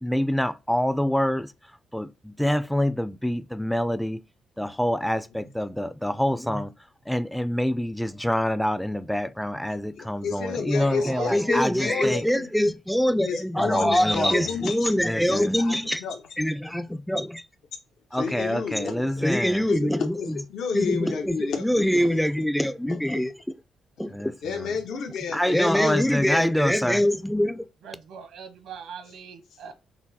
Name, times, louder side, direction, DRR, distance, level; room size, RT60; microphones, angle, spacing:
voice 1, 0.0-1.5 1.9-4.2 4.6-6.7 7.1-16.0 16.4-17.5 18.1-20.4 20.7-23.3 24.0-24.7 25.3-27.7, equal, ahead, 0.4 m, -24 dB
voice 2, 10.0-12.5 13.2-14.9 15.3-16.2 18.1-19.3 19.7-22.2 22.9-23.0 24.4-26.5, left 5 dB, 70° left, 0.8 m, -31 dB
voice 3, 10.7-11.6 27.8-29.7, right 6 dB, 85° right, 1.0 m, -40 dB
6.0 x 2.0 x 4.1 m
cardioid pair, 90°, 0 cm